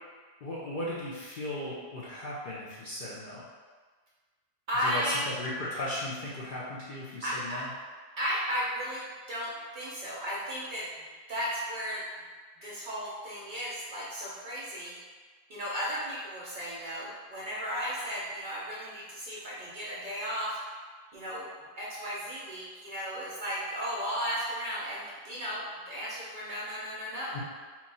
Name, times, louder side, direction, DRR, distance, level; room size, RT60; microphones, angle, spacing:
voice 1, 0.4-3.4 4.8-7.7 12.6-12.7 27.3-27.4, left 1 dB, 55° left, -7 dB, 0.6 m, -37 dB
voice 2, 4.7-5.3 7.2-7.7 8.2-12.0 12.6-15.0 15.5-20.6 21.1-21.5 21.8-27.4, equal, 50° right, -6 dB, 0.7 m, -35 dB
2.9 x 2.3 x 4.0 m, 1.5 s
omnidirectional pair, 1.3 m